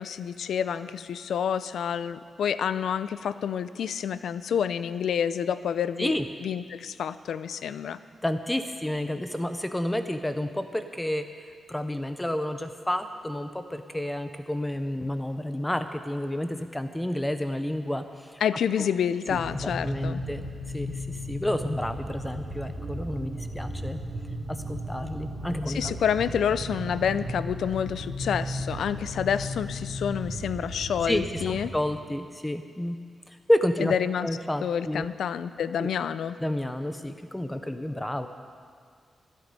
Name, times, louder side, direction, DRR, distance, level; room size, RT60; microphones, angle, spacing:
voice 1, 0.0-6.1 6.4-8.0 18.4-20.2 25.7-31.7 33.8-34.3 34.6-36.4, left 8 dB, 80° left, 14 dB, 0.5 m, -28 dB
voice 2, 8.2-11.3 11.7-18.4 18.8-18.9 19.3-20.5 20.7-24.0 24.7-26.0 31.0-33.0 33.5-33.9 34.2-35.1 35.8-35.9 36.4-38.3, left 1 dB, 5° left, 8 dB, 0.5 m, -30 dB
sound 1, 19.3-31.7, equal, 60° right, 2.6 m, -35 dB
25.0 x 9.3 x 5.3 m, 2.1 s
wide cardioid pair, 150°, 0 cm